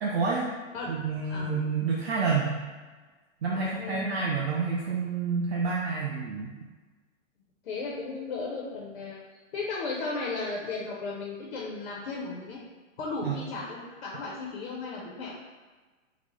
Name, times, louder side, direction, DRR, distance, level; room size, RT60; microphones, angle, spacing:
voice 1, 0.0-0.5 0.9-2.6 3.4-6.5 13.2-13.3, right 4 dB, 55° right, -3 dB, 0.4 m, -28 dB
voice 2, 3.5-4.2 7.6-9.2 9.5-12.6 13.0-15.3, left 3 dB, 50° left, -3 dB, 0.6 m, -35 dB
3.9 x 2.0 x 3.0 m, 1.3 s
hypercardioid pair, 165°, 40 cm